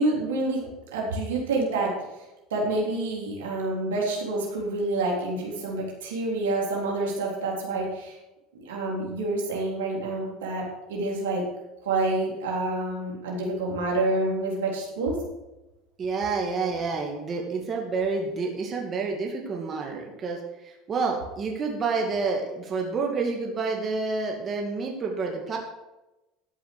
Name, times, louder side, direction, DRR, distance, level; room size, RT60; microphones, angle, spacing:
voice 1, 0.0-1.9 2.5-8.2 8.5-10.6 10.9-11.4 11.8-15.1, right 2 dB, 90° right, -2 dB, 3.6 m, -28 dB
voice 2, 16.0-20.4 20.6-25.6, right 4 dB, 35° right, 1 dB, 2.3 m, -29 dB
13.0 x 5.6 x 6.9 m, 0.99 s
supercardioid pair, 95°, 0 cm